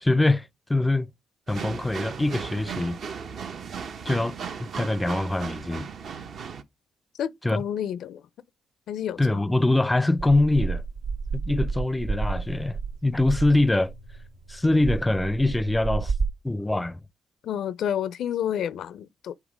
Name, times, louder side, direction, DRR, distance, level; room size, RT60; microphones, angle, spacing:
voice 1, 0.0-1.1 1.5-3.0 4.1-4.3 4.6-5.9 7.4-7.6 9.2-10.8 11.3-13.9 14.5-16.1 16.4-17.0, left 2 dB, 10° left, 0.4 m, -23 dB
sound 1, 1.5-6.6, right 6 dB, 60° right, 0.7 m, -36 dB
voice 2, 7.2-8.2 8.9-9.4 17.4-19.3, left 9 dB, 70° left, 0.4 m, -30 dB
sound 2, 10.2-16.3, right 4 dB, 85° right, 1.4 m, -31 dB
7.2 x 3.4 x 5.0 m
cardioid pair, 90°, 0 cm